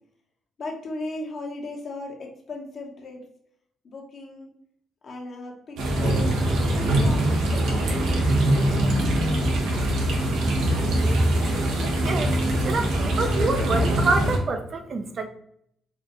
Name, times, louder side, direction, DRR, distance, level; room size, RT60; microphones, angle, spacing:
voice 1, 0.6-3.2 3.8-4.5 5.0-6.3 6.7-9.6, left 2 dB, 55° left, 1 dB, 1.0 m, -37 dB
sound 1, 5.8-14.4, right 1 dB, 85° right, 0.9 m, -22 dB
voice 2, 12.0-15.3, right 3 dB, 45° right, 7 dB, 0.5 m, -27 dB
4.6 x 2.4 x 2.9 m, 0.70 s
cardioid pair, 90°, 0 cm